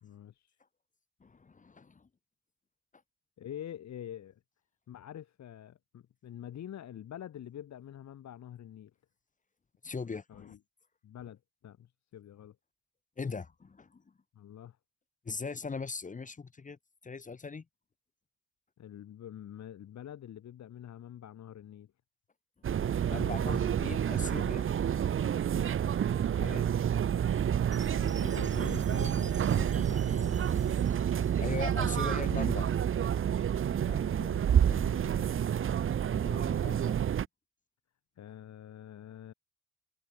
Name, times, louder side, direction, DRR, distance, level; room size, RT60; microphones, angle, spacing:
voice 1, 0.0-0.6 3.4-4.4 4.9-8.9 10.3-10.6 11.0-12.6 14.3-14.8 18.8-21.9 25.5-25.7 27.9-30.8 33.8-35.3 38.2-39.3, left 10 dB, 65° left, 2.7 m, -46 dB
voice 2, 1.2-2.1 9.8-10.6 13.2-14.0 15.2-16.8 17.0-17.6 23.1-24.7 26.3-26.7 31.4-32.7 36.1-37.0, left 4 dB, 25° left, 1.1 m, -39 dB
sound 1, 22.6-37.3, right 9 dB, 45° right, 0.8 m, -29 dB
Chime, 27.7-31.8, right 4 dB, 25° right, 3.4 m, -51 dB
cardioid pair, 90°, 30 cm